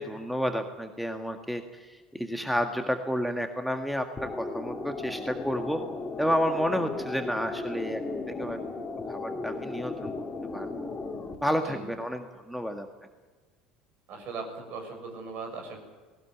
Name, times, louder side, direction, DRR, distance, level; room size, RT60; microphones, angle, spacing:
voice 1, 0.0-5.8 6.2-8.6 9.1-10.1 10.5-10.7 11.4-12.9, equal, ahead, 5 dB, 1.8 m, -30 dB
sound 1, 4.2-11.3, left 3 dB, 20° left, 3.3 m, -36 dB
voice 2, 14.1-15.8, right 4 dB, 50° right, 4 dB, 7.0 m, -38 dB
19.5 x 18.5 x 9.5 m, 1.4 s
figure-of-eight pair, 70°, 4 cm